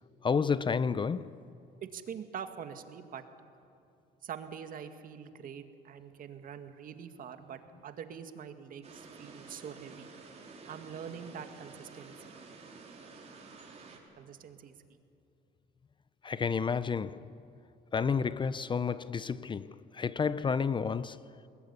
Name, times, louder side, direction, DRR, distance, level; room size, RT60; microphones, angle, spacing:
voice 1, 0.2-1.4 16.2-17.3 17.9-21.2, left 6 dB, 30° left, 0.6 m, -31 dB
voice 2, 1.8-3.2 4.2-10.1 10.7-12.1 14.2-14.7, right 8 dB, 55° right, 2.1 m, -44 dB
sound 1, 8.8-14.0, right 4 dB, 40° right, 4.8 m, -51 dB
27.0 x 21.0 x 9.8 m
cardioid pair, 110°, 17 cm